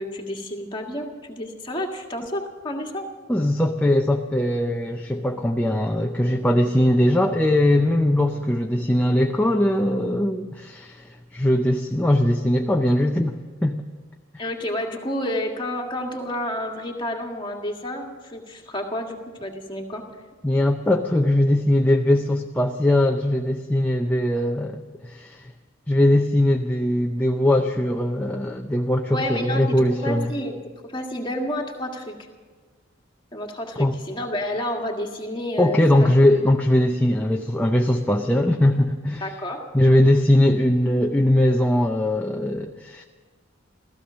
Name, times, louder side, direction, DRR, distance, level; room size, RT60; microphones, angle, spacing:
voice 1, 0.0-3.1 14.4-20.1 29.1-32.2 33.3-36.1 39.2-39.7, left 1 dB, 25° left, 1 dB, 1.8 m, -30 dB
voice 2, 3.3-11.0 11.3-13.8 20.4-25.4 25.9-30.3 33.8-33.9 35.6-39.3 39.7-43.0, left 1 dB, 10° left, 2 dB, 0.6 m, -20 dB
16.0 x 14.5 x 6.2 m, 1.4 s
head